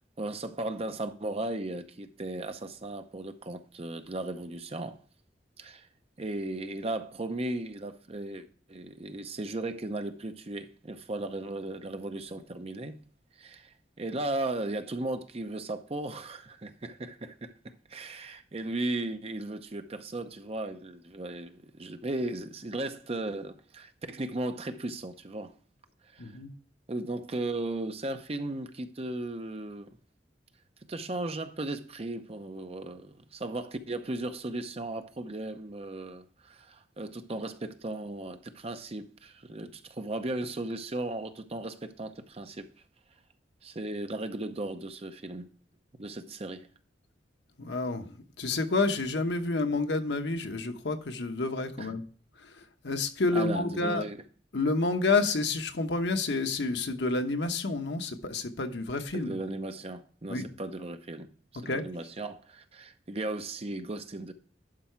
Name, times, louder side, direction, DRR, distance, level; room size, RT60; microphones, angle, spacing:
voice 1, 0.2-5.0 5.6-5.9 6.2-13.0 13.4-25.5 26.1-26.3 26.9-29.9 30.9-42.7 43.6-45.5 46.0-46.7 51.8-51.9 53.3-54.2 59.1-61.3 61.6-64.3, right 2 dB, 35° right, 0.7 m, -36 dB
voice 2, 26.2-26.5 47.7-48.1 48.4-52.0 52.8-54.0 54.5-59.3 60.3-60.5 61.7-61.8, left 3 dB, 70° left, 1.0 m, -29 dB
11.5 x 4.7 x 4.5 m
head